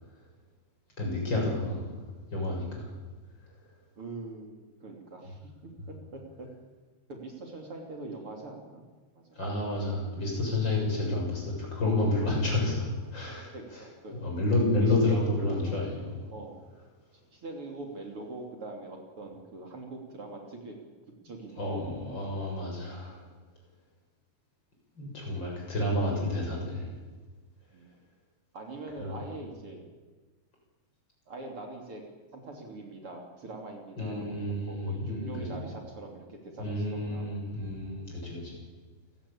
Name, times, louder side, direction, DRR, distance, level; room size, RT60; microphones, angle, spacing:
voice 1, 1.0-1.9 2.3-2.9 9.4-13.5 14.2-16.1 21.6-23.2 25.0-26.9 29.0-29.2 34.0-35.6 36.6-38.6, left 2 dB, 35° left, -1 dB, 8.2 m, -30 dB
voice 2, 4.0-6.5 7.1-8.9 9.1-9.4 13.5-14.2 14.8-16.0 16.3-16.6 17.3-20.8 21.2-21.9 23.1-23.3 27.7-27.9 28.5-29.8 31.3-32.0 32.3-37.3, right 2 dB, 50° right, 1 dB, 3.9 m, -43 dB
28.5 x 17.5 x 8.8 m, 1.3 s
omnidirectional pair, 3.3 m